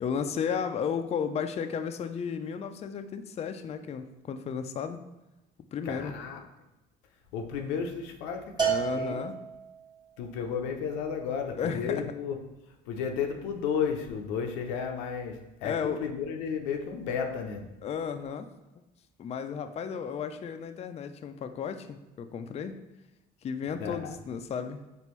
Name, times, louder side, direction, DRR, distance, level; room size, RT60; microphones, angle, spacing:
voice 1, 0.0-5.0 5.7-6.1 8.7-9.3 11.6-12.1 15.6-16.0 17.8-18.5 19.2-22.8 23.4-24.8, left 7 dB, 30° left, 8 dB, 0.4 m, -33 dB
voice 2, 5.8-6.4 7.3-9.2 10.2-12.4 12.9-17.7 23.8-24.1, left 6 dB, 80° left, 4 dB, 0.5 m, -33 dB
Bell, 8.6-10.0, right 7 dB, 20° right, 1.2 m, -30 dB
4.4 x 3.0 x 3.0 m, 1.0 s
supercardioid pair, 70°, 21 cm